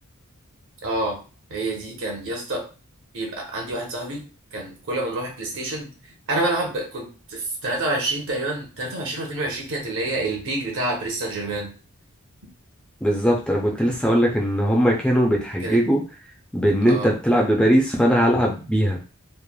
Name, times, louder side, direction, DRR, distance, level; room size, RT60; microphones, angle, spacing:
voice 1, 0.8-1.2 1.5-2.6 3.1-4.2 4.5-5.9 6.3-11.7 15.6-15.8 16.9-17.1, right 2 dB, 60° right, 0 dB, 0.8 m, -27 dB
voice 2, 13.0-16.0 16.5-19.0, equal, 5° left, -1 dB, 0.3 m, -20 dB
3.0 x 2.0 x 2.2 m, 0.35 s
head